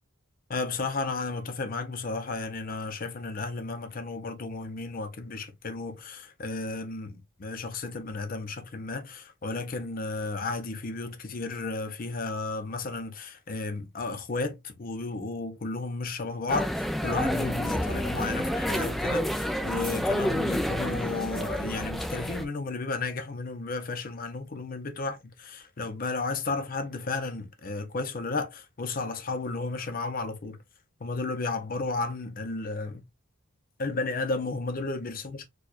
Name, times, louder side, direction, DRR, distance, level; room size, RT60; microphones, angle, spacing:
voice 1, 0.5-30.6 31.0-33.0 33.8-35.5, left 3 dB, 45° left, 0.6 m, -33 dB
sound 1, 16.5-22.4, equal, ahead, 0.3 m, -29 dB
4.5 x 2.3 x 2.4 m
head